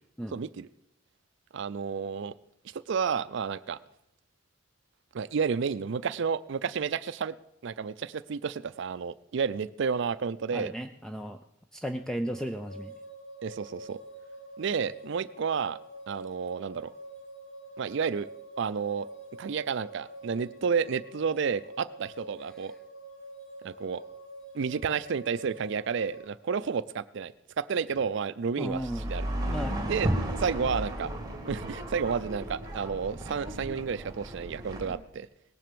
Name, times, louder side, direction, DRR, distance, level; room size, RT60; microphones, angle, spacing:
voice 1, 0.3-0.7 1.5-2.3 2.6-3.8 5.1-7.4 7.6-10.7 13.4-14.0 14.6-15.8 16.1-16.9 17.8-18.3 18.6-19.1 19.4-22.7 23.6-24.0 24.5-29.3 29.9-31.1 31.5-35.3, right 6 dB, 65° right, 16 dB, 0.4 m, -31 dB
voice 2, 10.5-11.4 11.7-12.9 28.6-29.1 29.5-29.8, equal, 5° left, 7 dB, 0.5 m, -35 dB
sound 1, 12.2-26.2, right 1 dB, 85° left, 6.3 m, -46 dB
sound 2, 28.7-35.0, right 1 dB, 20° right, 1.9 m, -34 dB
18.0 x 7.7 x 6.8 m, 0.82 s
head